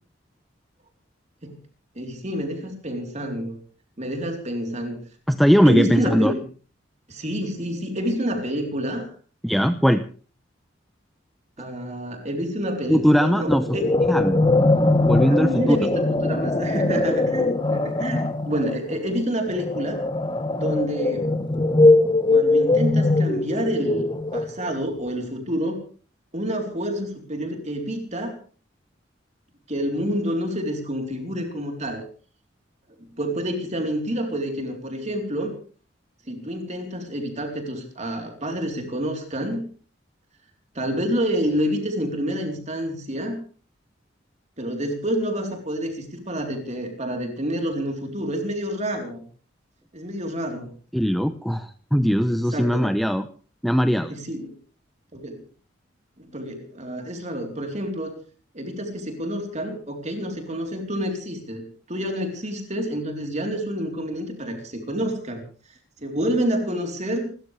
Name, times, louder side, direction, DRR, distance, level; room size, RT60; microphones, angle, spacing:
voice 1, 1.9-3.6 4.0-5.0 5.6-6.4 7.1-9.1 11.6-13.9 15.2-20.0 20.5-21.3 22.3-25.8 26.3-28.3 29.7-32.0 33.0-35.5 36.3-39.7 40.7-43.4 44.6-49.2 49.9-50.7 52.3-52.9 54.1-54.6 55.1-55.4 56.2-58.1 58.5-65.4 65.7-67.3, equal, 35° right, 2 dB, 4.0 m, -28 dB
voice 2, 5.3-6.3 9.4-10.0 12.9-13.6 14.1-14.4 15.0-15.8 50.9-53.2 53.6-54.1, equal, ahead, 8 dB, 0.8 m, -20 dB
sound 1, 13.5-24.8, left 2 dB, 25° left, 1.2 m, -21 dB
28.5 x 14.0 x 3.5 m, 0.40 s
head